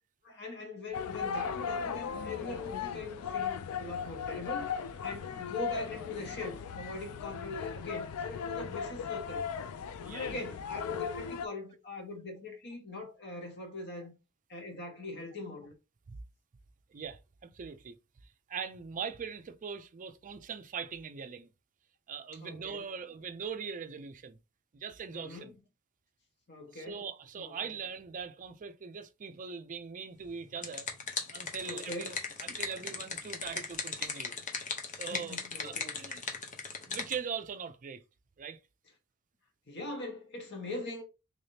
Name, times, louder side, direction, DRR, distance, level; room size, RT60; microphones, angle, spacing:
voice 1, 0.2-4.7 5.0-9.4 10.2-14.1 14.5-15.7 22.4-22.9 25.1-25.5 26.5-27.0 27.4-27.5 31.7-32.2 34.9-36.0 39.7-41.0, left 2 dB, 55° left, 1.2 m, -41 dB
sound 1, 0.9-11.5, left 6 dB, 75° left, 0.4 m, -37 dB
voice 2, 10.0-10.4 16.1-16.2 16.9-18.0 18.5-21.5 22.1-24.4 24.7-25.5 26.7-30.9 31.3-34.3 35.0-36.2 36.9-38.0 38.4-38.6, right 6 dB, 35° right, 0.4 m, -41 dB
sound 2, 30.3-37.2, left 5 dB, 35° left, 0.7 m, -38 dB
3.4 x 3.2 x 2.7 m
head